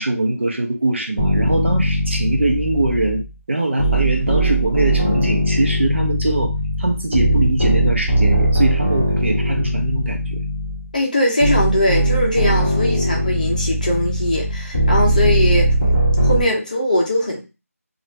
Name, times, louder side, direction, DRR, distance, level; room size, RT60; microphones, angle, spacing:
voice 1, 0.0-10.4, right 2 dB, 50° right, 2 dB, 0.8 m, -22 dB
sound 1, 1.2-3.3 3.8-10.9 11.4-16.4, right 1 dB, 15° right, 1.0 m, -19 dB
voice 2, 10.9-15.7 16.2-17.4, left 1 dB, 30° left, 0 dB, 0.6 m, -20 dB
2.5 x 2.4 x 3.2 m, 0.27 s
figure-of-eight pair, 175°, 8 cm